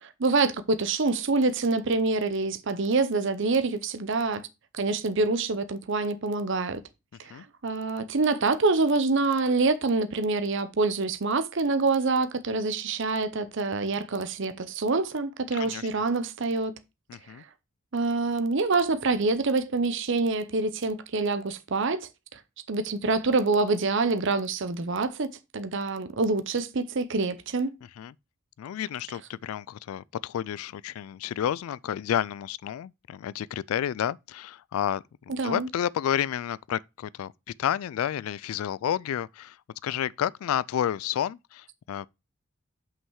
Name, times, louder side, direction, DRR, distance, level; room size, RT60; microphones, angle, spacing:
voice 1, 0.0-4.4 4.7-6.8 7.2-7.3 7.6-16.7 17.9-22.4 22.7-27.7 35.4-35.7, right 3 dB, 60° right, 0.7 m, -26 dB
voice 2, 15.5-15.9 17.1-17.4 28.0-28.1 28.6-37.3 37.6-39.6 39.8-42.1, left 10 dB, 85° left, 0.3 m, -30 dB
5.9 x 5.5 x 4.7 m
head